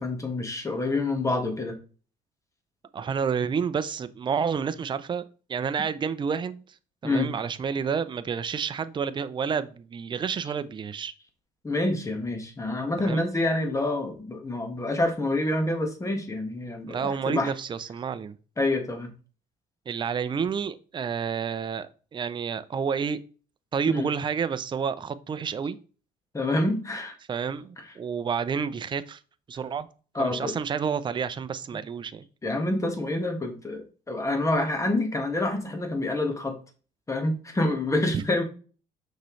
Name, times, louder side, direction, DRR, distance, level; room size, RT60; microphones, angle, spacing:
voice 1, 0.0-1.7 7.0-7.3 11.6-17.5 18.6-19.1 23.9-24.1 26.3-27.1 30.1-30.6 32.4-36.5 37.1-38.4, left 2 dB, 20° left, 4 dB, 1.6 m, -27 dB
voice 2, 2.9-5.2 5.5-6.6 7.0-11.1 13.0-13.3 16.9-18.3 19.9-23.2 23.7-25.8 27.3-29.2 29.5-29.9 30.2-32.3 38.1-38.2, right 6 dB, 30° right, 12 dB, 0.5 m, -29 dB
6.5 x 5.6 x 3.2 m, 0.38 s
cardioid pair, 110°, 17 cm